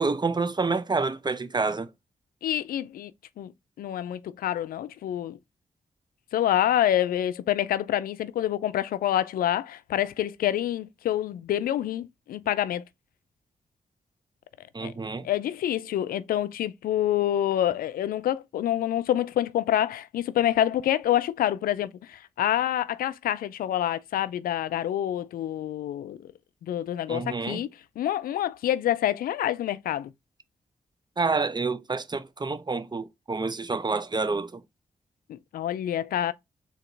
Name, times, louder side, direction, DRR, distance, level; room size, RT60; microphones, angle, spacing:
voice 1, 0.0-1.9 14.7-15.3 27.1-27.6 31.2-34.6, right 4 dB, 30° right, 0.6 m, -28 dB
voice 2, 2.4-3.1 3.4-3.5 3.8-5.4 6.3-12.8 14.8-14.9 15.2-26.3 26.6-27.7 28.0-30.1 35.3-36.3, left 11 dB, 90° left, 0.4 m, -27 dB
3.8 x 2.8 x 4.5 m
cardioid pair, 50°, 14 cm